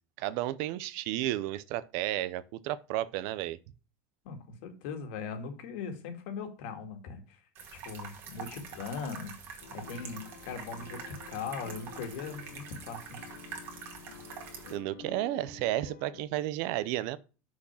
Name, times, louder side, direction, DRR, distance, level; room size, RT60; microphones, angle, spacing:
voice 1, 0.2-3.6 14.7-17.2, right 14 dB, 50° right, 0.5 m, -32 dB
voice 2, 4.2-7.4 7.7-9.4 9.7-13.2, left 5 dB, 65° left, 2.1 m, -40 dB
sound 1, 7.6-14.8, right 6 dB, 35° right, 1.8 m, -45 dB
sound 2, 9.6-16.3, left 6 dB, 85° left, 1.3 m, -50 dB
6.3 x 6.0 x 5.6 m
cardioid pair, 175°, 7 cm